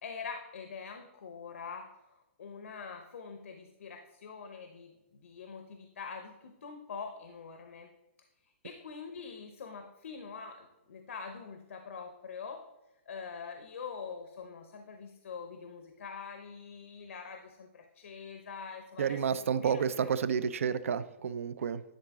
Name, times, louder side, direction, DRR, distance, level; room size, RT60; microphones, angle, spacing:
voice 1, 0.0-7.9 8.6-12.7 13.1-20.1, left 5 dB, 90° left, 5 dB, 0.8 m, -44 dB
voice 2, 19.0-21.8, right 7 dB, 85° right, 15 dB, 0.5 m, -30 dB
10.5 x 3.9 x 3.6 m, 0.96 s
hypercardioid pair, 165°, 7 cm